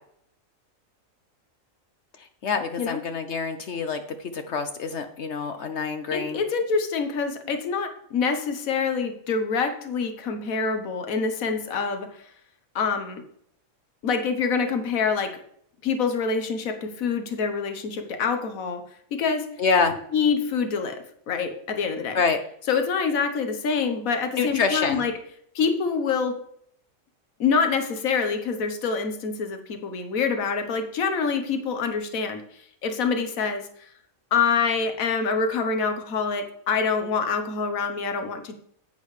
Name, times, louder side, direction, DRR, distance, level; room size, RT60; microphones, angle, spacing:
voice 1, 2.4-4.0 4.3-6.4 19.6-19.9 22.1-22.4 24.4-25.0, left 5 dB, 60° left, 8 dB, 0.9 m, -26 dB
voice 2, 6.1-12.1 12.7-13.2 14.0-15.3 15.8-18.8 19.1-19.5 20.1-22.2 22.7-25.1 25.5-26.4 27.4-32.4 32.8-33.6 34.3-38.5, left 5 dB, 80° left, 7 dB, 1.5 m, -26 dB
10.5 x 8.5 x 3.2 m, 0.66 s
omnidirectional pair, 1.4 m